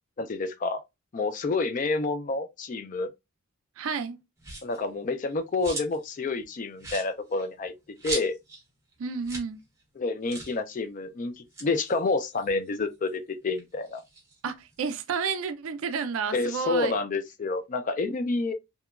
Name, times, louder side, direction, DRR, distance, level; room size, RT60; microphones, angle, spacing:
voice 1, 0.2-0.8 1.1-3.1 4.6-7.7 8.0-8.3 10.0-14.0 16.3-18.5, left 3 dB, 35° left, 0.3 m, -29 dB
voice 2, 3.8-4.2 9.0-9.6 14.4-17.0, right 5 dB, 65° right, 0.4 m, -31 dB
sound 1, 4.4-4.8 5.2-6.1 6.4-6.5 6.8-8.6 8.9-9.0 9.2-9.5 9.8-9.9 10.3-10.6 11.3-13.1 13.5-15.0, right 2 dB, 15° right, 0.7 m, -39 dB
2.9 x 2.2 x 2.3 m
head